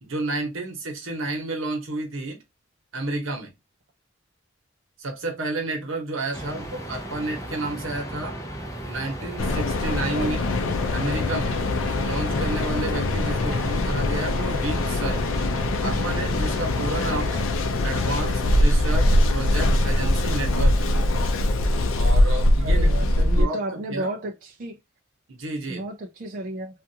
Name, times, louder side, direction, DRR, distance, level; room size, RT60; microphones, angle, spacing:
voice 1, 0.0-2.4 2.9-3.5 5.0-8.4 8.9-10.4 10.9-11.6 12.0-15.2 15.8-17.3 17.8-20.9 21.9-24.1 25.3-25.8, right 2 dB, 80° right, 1.0 m, -31 dB
sound 1, 6.3-17.4, equal, 15° left, 0.6 m, -35 dB
Mechanical fan, 9.4-23.4, left 1 dB, 80° left, 0.5 m, -22 dB
voice 2, 17.0-17.5 22.6-24.8 25.7-26.8, right 1 dB, 45° right, 0.4 m, -33 dB
2.4 x 2.4 x 2.7 m
head